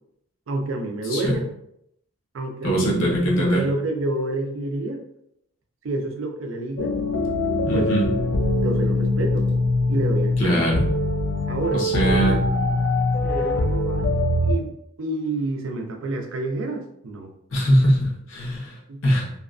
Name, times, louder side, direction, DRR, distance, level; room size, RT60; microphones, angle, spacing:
voice 1, 0.5-1.5 2.3-5.0 5.8-6.9 7.7-7.9 8.6-9.4 9.9-10.7 11.5-12.4 13.2-14.7 15.0-17.3 18.9-19.0, right 2 dB, 75° right, 4 dB, 0.4 m, -28 dB
voice 2, 2.6-3.6 7.6-8.1 10.4-10.8 11.7-12.4 17.5-18.8 19.0-19.3, equal, 80° left, -4 dB, 0.9 m, -21 dB
sound 1, 6.8-14.5, left 2 dB, 60° left, 0.3 m, -22 dB
2.6 x 2.3 x 2.4 m, 0.75 s
head